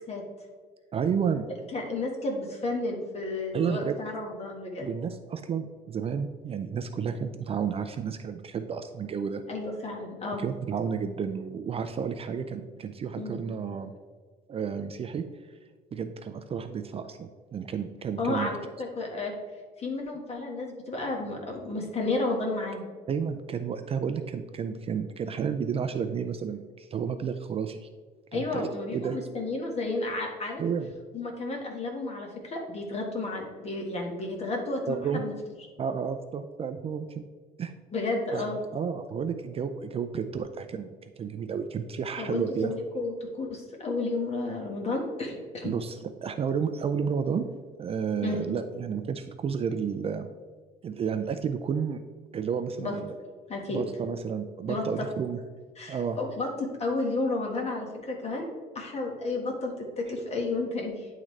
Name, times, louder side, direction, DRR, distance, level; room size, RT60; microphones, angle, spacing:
voice 1, 0.9-1.5 3.5-4.0 4.8-9.4 10.4-13.9 14.5-15.2 15.9-18.5 23.1-27.9 28.3-29.2 30.6-30.9 34.9-35.2 35.8-37.2 37.6-37.7 38.3-40.9 41.2-42.7 45.6-47.5 47.8-50.3 50.8-52.0 52.3-53.1 53.7-55.4 55.9-56.2, right 6 dB, 35° right, 9 dB, 0.4 m, -31 dB
voice 2, 1.7-4.9 9.5-10.5 13.2-13.4 18.2-19.3 19.8-22.8 28.3-30.6 31.1-35.3 37.9-38.6 42.2-45.7 48.2-48.5 52.8-52.9 53.5-53.8 54.7-55.0 55.8-56.5 56.8-58.5 58.7-61.1, left 2 dB, 40° left, 1 dB, 1.6 m, -32 dB
10.0 x 3.7 x 3.2 m, 1.4 s
cardioid pair, 110°, 17 cm